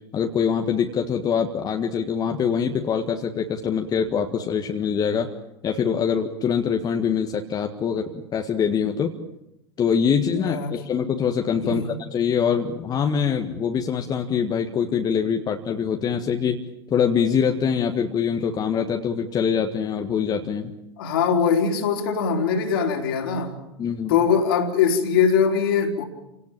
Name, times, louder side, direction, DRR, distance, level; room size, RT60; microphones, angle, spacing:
voice 1, 0.1-5.3 5.6-9.1 9.8-16.6 16.9-20.7 23.8-24.2, left 7 dB, 30° left, 4 dB, 1.7 m, -24 dB
voice 2, 10.2-10.7 11.6-11.9 21.0-23.6 24.1-26.0, left 6 dB, 60° left, 3 dB, 4.0 m, -22 dB
28.5 x 18.0 x 9.0 m, 0.90 s
figure-of-eight pair, 80°, 14 cm